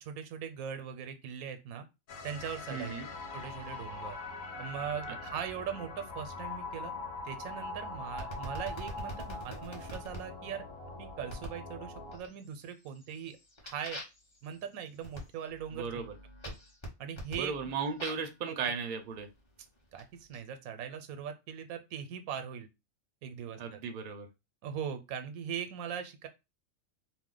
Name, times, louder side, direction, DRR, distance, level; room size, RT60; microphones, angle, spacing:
voice 1, 0.0-1.9 2.2-2.9 3.3-4.2 4.6-6.9 7.2-10.6 11.0-13.4 13.6-14.0 14.4-15.9 16.4-16.5 17.0-17.7 18.5-18.6 19.9-22.7 23.2-23.8 24.6-26.3, right 8 dB, 90° right, 8 dB, 1.0 m, -40 dB
sound 1, 2.1-12.2, left 2 dB, 75° left, 1.0 m, -42 dB
voice 2, 2.7-3.1 15.7-16.1 17.4-19.3 23.6-24.3, right 5 dB, 55° right, 6 dB, 0.5 m, -36 dB
sound 2, 8.2-10.2 11.3-11.6 12.1-12.6 13.0-18.4 19.1-20.4, equal, 25° left, 0.7 m, -45 dB
2.7 x 2.0 x 3.7 m, 0.25 s
omnidirectional pair, 1.4 m